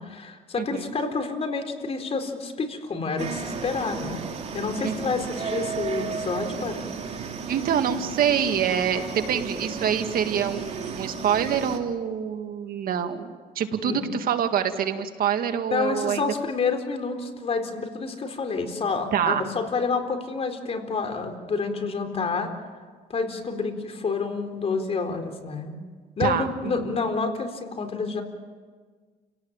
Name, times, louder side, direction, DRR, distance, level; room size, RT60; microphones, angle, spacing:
voice 1, 0.0-4.2 4.5-6.9 13.8-14.0 15.7-22.5 23.1-25.8 26.2-28.2, left 4 dB, 35° left, 6 dB, 4.1 m, -28 dB
voice 2, 0.6-0.9 4.8-5.3 7.5-16.3 19.1-19.4 26.2-26.9, right 8 dB, 60° right, 7 dB, 2.0 m, -26 dB
sound 1, 3.2-11.8, right 5 dB, 40° right, 3.1 m, -34 dB
29.5 x 18.0 x 8.9 m, 1.5 s
cardioid pair, 110°, 17 cm